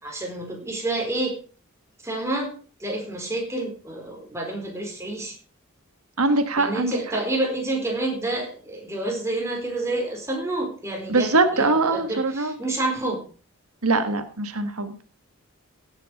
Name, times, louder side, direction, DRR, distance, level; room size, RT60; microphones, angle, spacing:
voice 1, 0.0-1.3 2.0-2.5 2.8-5.4 6.6-13.2, right 2 dB, 15° right, 0 dB, 4.5 m, -28 dB
voice 2, 6.2-7.0 11.1-12.5 13.8-15.0, right 3 dB, 80° right, 8 dB, 1.5 m, -22 dB
16.5 x 8.1 x 5.3 m, 0.39 s
head